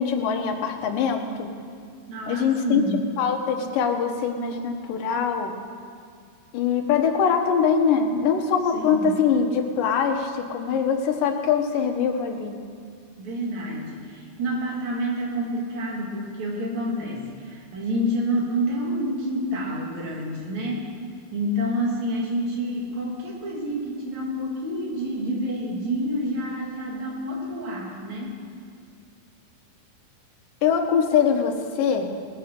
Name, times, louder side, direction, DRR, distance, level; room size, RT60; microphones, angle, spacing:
voice 1, 0.0-1.5 2.3-2.8 3.2-5.5 6.5-12.6 30.6-32.1, left 6 dB, 90° left, 3 dB, 2.7 m, -23 dB
voice 2, 2.1-3.1 8.7-9.2 13.2-20.9 21.3-28.4, equal, 60° right, -2 dB, 3.4 m, -28 dB
19.0 x 7.4 x 6.6 m, 2.2 s
omnidirectional pair, 3.8 m